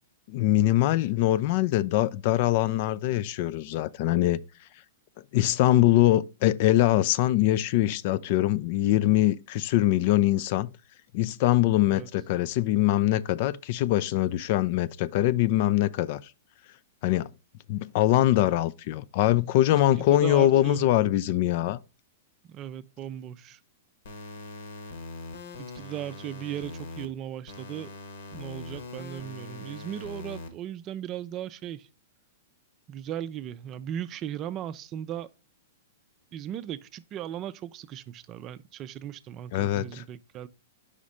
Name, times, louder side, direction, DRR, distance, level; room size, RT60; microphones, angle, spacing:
voice 1, 0.3-4.4 5.3-10.7 11.1-16.2 17.0-17.3 17.7-21.8 39.5-40.0, left 14 dB, 50° left, 0.3 m, -23 dB
voice 2, 20.1-20.8 22.5-23.6 25.7-27.9 28.3-31.9 32.9-35.3 36.3-40.5, right 10 dB, 30° right, 0.4 m, -37 dB
sound 1, 24.0-27.0 27.5-30.5, left 3 dB, 70° left, 1.4 m, -41 dB
5.0 x 4.2 x 5.0 m
hypercardioid pair, 125°, 0 cm